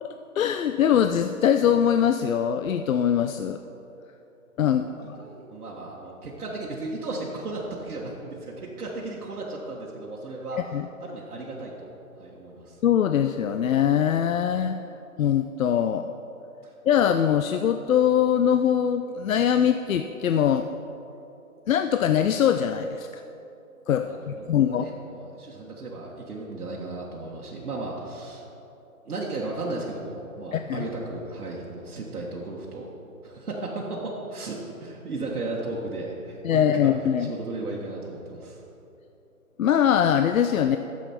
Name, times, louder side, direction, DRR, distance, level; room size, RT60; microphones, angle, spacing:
voice 1, 0.0-3.6 4.6-5.2 10.7-10.9 12.8-14.8 15.2-16.1 16.9-20.7 21.7-23.2 23.9-24.9 30.5-30.8 36.4-37.3 39.6-40.8, left 9 dB, 65° left, 8 dB, 0.5 m, -22 dB
voice 2, 4.7-10.6 11.0-11.9 12.2-12.8 16.6-16.7 24.0-28.4 29.0-32.9 33.2-36.9 37.2-38.6, right 2 dB, 80° right, -4 dB, 1.6 m, -35 dB
12.0 x 7.2 x 4.4 m, 2.9 s
hypercardioid pair, 155°, 44 cm